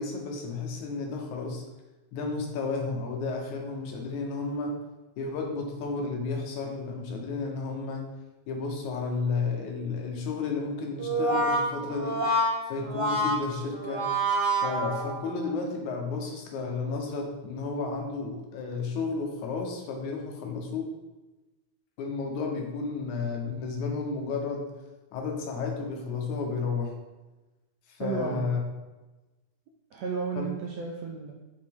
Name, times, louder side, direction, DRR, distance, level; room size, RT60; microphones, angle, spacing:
voice 1, 0.0-1.6 2.1-4.8 5.2-8.1 8.5-12.2 12.7-14.0 14.6-20.9 22.0-24.7 25.1-27.0 27.9-28.6 30.4-30.5, left 4 dB, 75° left, 2 dB, 2.2 m, -32 dB
Brass instrument, 11.0-15.5, right 1 dB, 50° right, 2.7 m, -27 dB
voice 2, 28.0-28.5 29.9-31.3, right 5 dB, 80° right, -1 dB, 1.6 m, -33 dB
6.2 x 4.9 x 3.6 m, 1.1 s
omnidirectional pair, 3.6 m